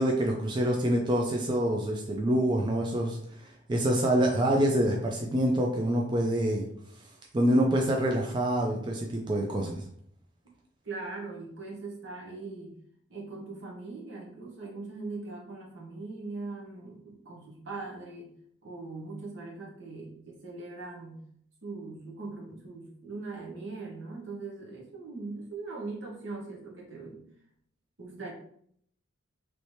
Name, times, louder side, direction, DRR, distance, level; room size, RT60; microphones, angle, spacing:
voice 1, 0.0-3.2 3.7-6.7 7.3-9.8, right 1 dB, 25° right, 0 dB, 0.3 m, -26 dB
voice 2, 10.8-12.8 13.1-18.3 18.6-21.2 21.6-27.2 28.0-28.3, right 3 dB, 70° right, -2 dB, 1.0 m, -40 dB
3.1 x 2.8 x 3.1 m, 0.67 s
head